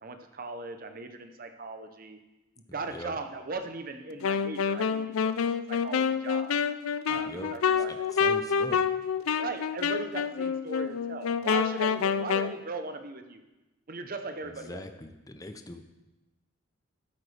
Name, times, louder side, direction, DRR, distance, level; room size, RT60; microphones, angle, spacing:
voice 1, 0.0-2.2 2.7-6.6 7.1-8.3 9.3-13.4 13.9-14.8, right 3 dB, 45° right, 8 dB, 0.7 m, -38 dB
voice 2, 2.7-3.2 7.1-7.5 7.9-8.8 14.4-15.8, left 1 dB, 15° left, 8 dB, 0.6 m, -42 dB
Wind instrument woodwind instrument, 4.2-12.6, left 6 dB, 80° left, 0.4 m, -28 dB
13.5 x 8.1 x 3.3 m, 1.1 s
head